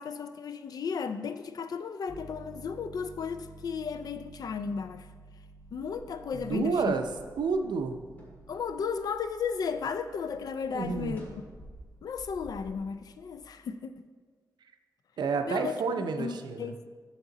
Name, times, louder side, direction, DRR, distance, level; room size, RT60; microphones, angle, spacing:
voice 1, 0.0-5.1 5.7-7.0 8.5-11.2 12.0-14.0 15.4-15.7 16.2-16.9, left 6 dB, 60° left, 10 dB, 0.4 m, -34 dB
Piano, 2.1-13.4, right 2 dB, ahead, 1.0 m, -53 dB
sound 1, 5.5-9.9 10.2-12.7, equal, 20° left, 1.8 m, -50 dB
voice 2, 6.3-7.1 7.4-8.0 10.7-11.2 15.2-16.8, right 5 dB, 85° right, 7 dB, 0.6 m, -30 dB
7.1 x 6.7 x 3.9 m, 1.6 s
wide cardioid pair, 170°, 7 cm